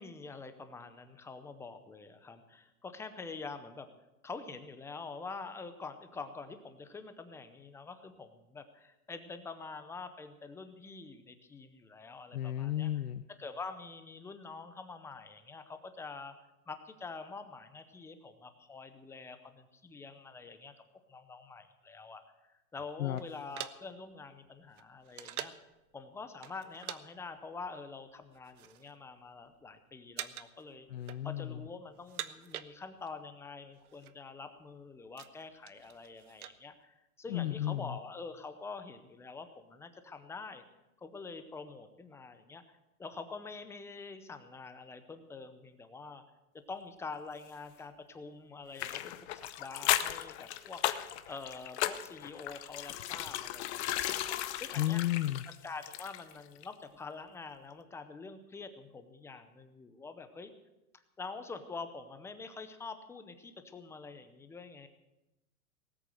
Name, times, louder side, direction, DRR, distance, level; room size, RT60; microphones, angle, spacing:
voice 1, 0.0-3.9 4.2-12.9 13.4-16.3 16.7-20.7 21.1-25.5 25.9-30.9 31.2-40.6 41.0-46.2 46.7-49.0 49.3-54.2 54.5-55.0 55.5-60.5 60.9-64.9, left 4 dB, 5° left, 9 dB, 0.6 m, -46 dB
voice 2, 12.3-13.2 23.0-23.2 30.9-31.6 37.3-38.0 54.8-55.4, left 13 dB, 90° left, 9 dB, 0.8 m, -33 dB
sound 1, 23.2-25.7 26.4-27.0 27.3-27.5 28.2-28.9 29.3-29.7 30.1-30.6 30.9-31.6 31.9-33.2 33.5-33.6 33.8-34.1 34.6-36.6, right 11 dB, 80° right, 1.0 m, -45 dB
sound 2, 48.8-56.4 56.6-56.7, left 13 dB, 50° left, 0.9 m, -36 dB
18.5 x 8.2 x 7.6 m, 0.95 s
hypercardioid pair, 145°, 44 cm